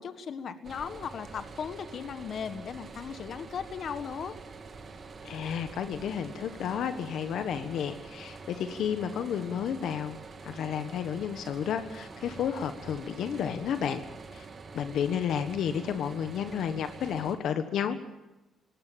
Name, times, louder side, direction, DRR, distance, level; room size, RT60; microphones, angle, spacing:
voice 1, 0.0-4.3, left 7 dB, 55° left, 11 dB, 1.5 m, -37 dB
sound 1, 0.6-17.4, right 4 dB, 40° right, 2.7 m, -46 dB
voice 2, 5.2-14.0 14.3-14.5 14.7-18.0, left 8 dB, 75° left, 9 dB, 1.4 m, -32 dB
19.0 x 18.0 x 8.7 m, 1.0 s
cardioid pair, 90°, 0 cm